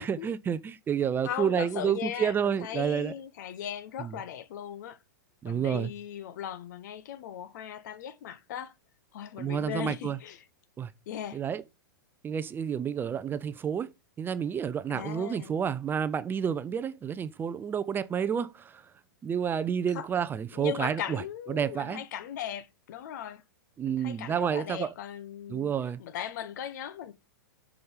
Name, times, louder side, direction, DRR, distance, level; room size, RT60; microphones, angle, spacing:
voice 1, 0.0-3.1 4.0-4.1 5.4-5.9 9.4-10.2 10.8-10.9 11.3-11.6 12.2-13.9 14.2-18.8 19.2-21.2 21.5-22.0 23.8-24.9 25.5-26.0, right 8 dB, 20° right, 0.6 m, -30 dB
voice 2, 1.2-5.0 5.4-8.7 9.1-10.4 11.1-11.4 14.9-15.5 19.9-20.1 20.5-23.4 23.9-25.7 26.0-27.1, left 10 dB, 60° left, 1.1 m, -38 dB
7.8 x 5.0 x 5.6 m
hypercardioid pair, 105°, 11 cm